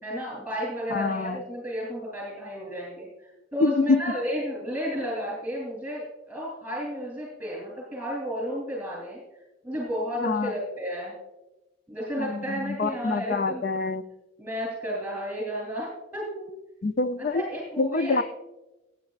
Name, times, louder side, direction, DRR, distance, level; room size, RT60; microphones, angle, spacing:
voice 1, 0.0-9.2 9.6-11.1 11.9-13.6 14.4-16.5 17.3-18.2, equal, 10° right, -4 dB, 3.0 m, -32 dB
voice 2, 0.9-1.4 3.6-4.0 10.2-10.5 12.2-14.0 16.8-17.4 17.8-18.2, left 3 dB, 50° left, 11 dB, 0.5 m, -26 dB
20.0 x 8.9 x 2.4 m, 1.0 s
head